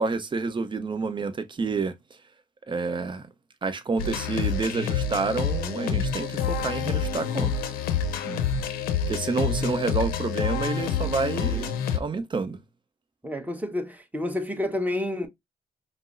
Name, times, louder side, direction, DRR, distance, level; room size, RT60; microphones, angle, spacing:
voice 1, 0.0-1.9 2.7-3.3 3.6-7.5 8.2-8.4 9.1-12.6, right 4 dB, 35° right, 0.7 m, -29 dB
sound 1, 4.0-12.0, left 6 dB, 90° left, 0.6 m, -27 dB
voice 2, 13.2-15.3, left 1 dB, 10° right, 1.1 m, -29 dB
5.3 x 2.0 x 2.5 m
supercardioid pair, 55°, 15 cm